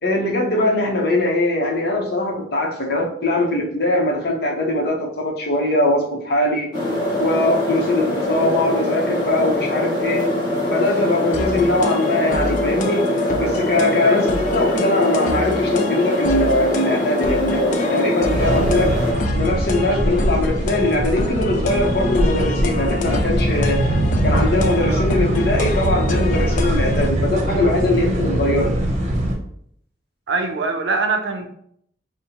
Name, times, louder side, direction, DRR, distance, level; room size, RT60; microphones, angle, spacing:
voice 1, 0.0-6.7 7.2-10.2 10.7-13.0 13.4-18.9 19.3-23.8 24.2-28.8, left 1 dB, 60° left, -1 dB, 0.9 m, -21 dB
sound 1, 6.7-19.1, left 1 dB, 25° left, 1.2 m, -23 dB
sound 2, 11.3-27.1, left 3 dB, 45° left, 0.4 m, -28 dB
sound 3, 18.3-29.3, right 1 dB, 40° right, 0.7 m, -22 dB
voice 2, 30.3-31.5, right 3 dB, 85° right, 6 dB, 0.6 m, -23 dB
5.3 x 2.1 x 2.8 m, 0.68 s
head